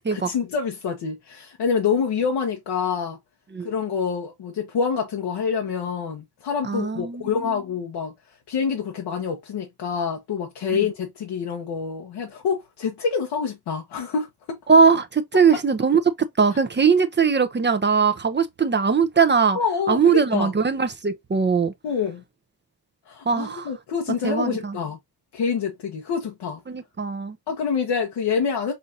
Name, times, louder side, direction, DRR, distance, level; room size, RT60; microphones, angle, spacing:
voice 1, 0.1-3.2 3.6-8.1 8.5-14.6 19.5-20.5 21.8-22.2 23.1-25.0 25.3-26.6 27.5-28.7, left 6 dB, 85° left, 1.1 m, -26 dB
voice 2, 6.7-7.6 14.7-19.6 19.9-21.7 23.3-23.7 24.2-24.7 26.7-27.4, right 5 dB, 25° right, 0.6 m, -20 dB
5.6 x 2.6 x 2.6 m
cardioid pair, 90°, 40 cm